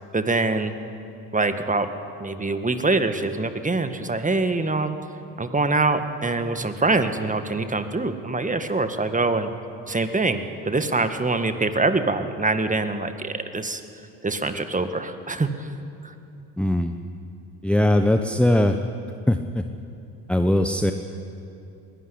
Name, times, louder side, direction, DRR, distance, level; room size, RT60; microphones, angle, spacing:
voice 1, 0.1-0.7 1.3-1.9 2.2-5.0 5.4-9.5 9.9-13.8 14.2-15.7 16.0-16.1, right 3 dB, 15° right, 9 dB, 1.8 m, -24 dB
voice 2, 16.6-16.9 17.6-18.8 19.3-19.6 20.3-20.9, left 1 dB, ahead, 7 dB, 1.0 m, -20 dB
21.0 x 18.5 x 9.9 m, 2.8 s
hypercardioid pair, 60°, 48 cm